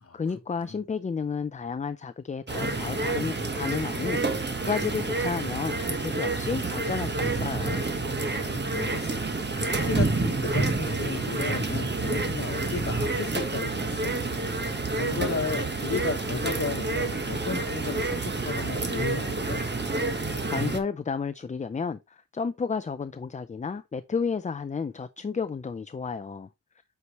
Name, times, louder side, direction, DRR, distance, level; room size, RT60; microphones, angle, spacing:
voice 1, 0.1-7.9 20.5-26.5, left 5 dB, 25° left, 0.3 m, -32 dB
sound 1, 2.5-20.8, right 3 dB, 30° right, 1.2 m, -28 dB
voice 2, 8.2-9.3 9.6-14.2 14.9-19.6, left 5 dB, 45° left, 1.2 m, -34 dB
8.2 x 4.7 x 2.9 m
wide cardioid pair, 125°, 33 cm